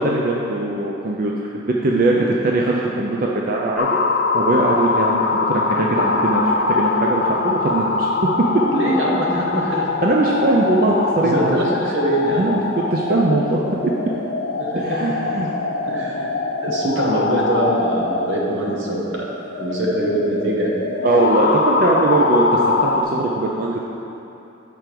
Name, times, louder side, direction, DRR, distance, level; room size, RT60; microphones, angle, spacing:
voice 1, 0.0-4.0 4.3-8.1 8.5-8.6 10.0-11.6 12.4-13.9 14.8-15.5 21.0-23.8, right 2 dB, 45° right, -2 dB, 0.4 m, -20 dB
sound 1, 3.8-23.0, left 3 dB, 60° left, 0.4 m, -23 dB
voice 2, 8.7-9.9 11.2-12.6 14.6-15.0 15.8-16.3 16.6-19.3 19.6-20.8, right 1 dB, 80° right, -3 dB, 1.1 m, -23 dB
5.1 x 4.5 x 6.0 m, 2.9 s
head